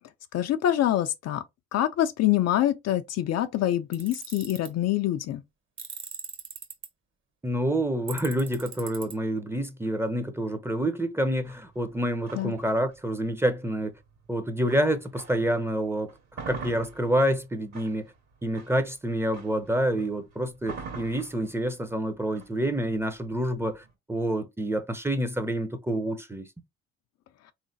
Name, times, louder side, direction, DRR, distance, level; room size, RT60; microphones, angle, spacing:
voice 1, 0.3-1.4 1.7-5.4 12.3-12.5, left 12 dB, 55° left, 0.5 m, -25 dB
Tools, 3.9-4.7 5.8-6.9 8.1-9.1, right 6 dB, 40° right, 1.2 m, -40 dB
voice 2, 7.4-13.9 14.3-16.1 16.4-18.1 18.4-26.5, right 1 dB, 10° right, 0.7 m, -28 dB
sound 1, 11.4-15.6 16.0-23.9, right 5 dB, 55° right, 1.8 m, -45 dB
3.7 x 3.2 x 2.7 m
supercardioid pair, 70°, 31 cm